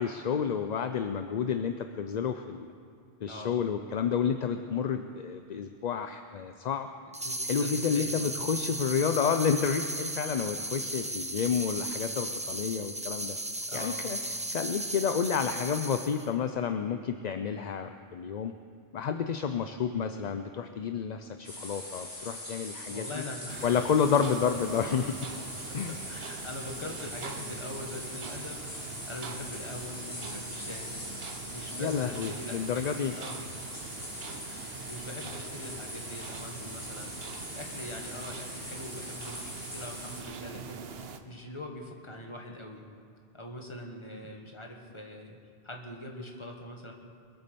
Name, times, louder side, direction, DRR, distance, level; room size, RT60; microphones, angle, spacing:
voice 1, 0.0-2.7 3.2-6.9 7.5-13.4 13.7-14.2 14.5-18.5 18.9-23.1 23.6-25.3 25.7-25.9 31.8-33.5, left 7 dB, 50° left, 8 dB, 0.6 m, -30 dB
sound 1, 7.1-16.3, right 1 dB, 10° right, 0.4 m, -36 dB
voice 2, 7.2-8.5 9.1-9.2 13.7-14.1 19.9-20.1 22.9-23.9 24.2-24.6 25.3-25.4 25.7-33.4 33.8-33.9 34.3-37.1 37.5-40.9 41.2-42.8 43.3-45.4 45.6-46.9, left 1 dB, 30° left, 1 dB, 1.7 m, -43 dB
sound 2, 21.4-40.2, left 1 dB, 85° left, 3.9 m, -42 dB
sound 3, 23.5-41.2, right 5 dB, 75° right, 1.1 m, -43 dB
22.5 x 8.5 x 6.9 m, 2.4 s
omnidirectional pair, 1.0 m